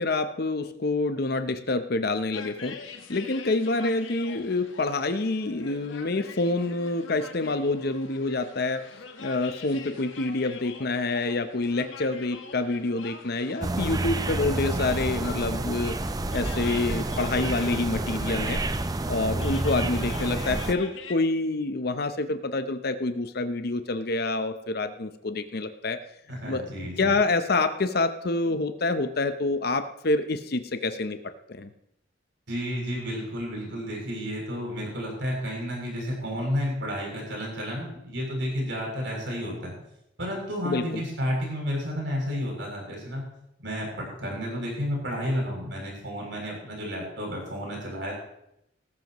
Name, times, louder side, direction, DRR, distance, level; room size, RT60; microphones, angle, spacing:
voice 1, 0.0-2.8 3.1-8.8 9.2-16.0 16.3-18.6 19.1-26.0 26.5-26.6 27.0-31.2 31.5-31.7 40.6-41.0, left 2 dB, 55° left, 9 dB, 0.8 m, -27 dB
sound 1, 2.3-21.2, left 5 dB, 80° left, 1.4 m, -44 dB
sound 2, 13.6-20.7, right 2 dB, 20° right, 0.5 m, -29 dB
voice 2, 26.3-27.1 32.5-39.7 40.2-43.2 43.6-48.1, equal, 70° right, -1 dB, 7.2 m, -31 dB
18.5 x 14.5 x 3.0 m, 0.81 s
head